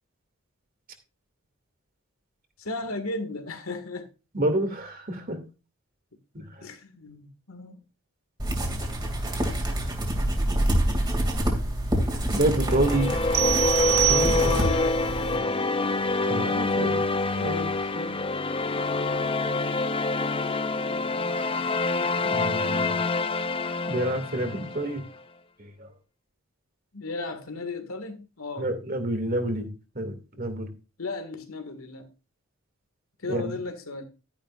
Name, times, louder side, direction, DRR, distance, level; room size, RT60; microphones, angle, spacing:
voice 1, 2.6-4.1 6.6-7.8 14.4-15.5 26.9-28.7 31.0-32.1 33.2-34.0, left 3 dB, 80° left, 2.1 m, -35 dB
voice 2, 4.3-5.4 6.3-6.4 12.3-13.1 13.9-14.6 16.2-17.1 17.4-18.1 22.2-23.1 23.9-25.0 25.6-25.9 28.6-30.7 33.3-33.6, right 1 dB, 40° right, 2.5 m, -28 dB
sound 1, 8.4-15.4, right 1 dB, 20° right, 2.6 m, -26 dB
sound 2, 12.6-25.0, left 3 dB, 25° left, 0.5 m, -26 dB
sound 3, 13.3-14.9, right 20 dB, 70° right, 0.4 m, -25 dB
12.5 x 10.5 x 2.5 m
head